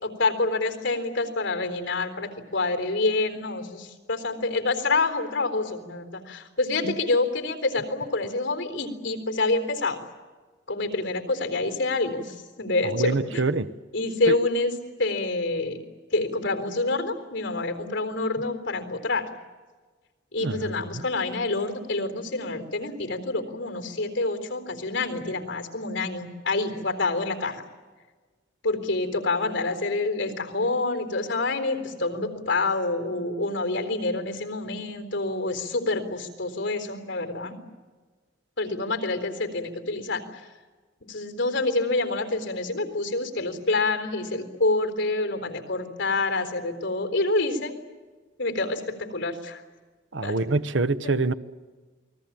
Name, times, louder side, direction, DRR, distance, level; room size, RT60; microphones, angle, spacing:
voice 1, 0.0-10.0 10.7-13.4 13.9-14.7 15.0-15.8 16.1-19.3 20.3-27.6 28.6-37.6 38.6-40.5 41.1-47.7 48.4-49.6 50.2-50.3 51.0-51.1, left 3 dB, 70° left, 5 dB, 3.9 m, -27 dB
voice 2, 12.8-13.7 14.3-14.4 20.4-20.7 50.1-51.3, right 3 dB, 80° right, 12 dB, 1.0 m, -25 dB
29.0 x 20.5 x 8.9 m, 1.4 s
head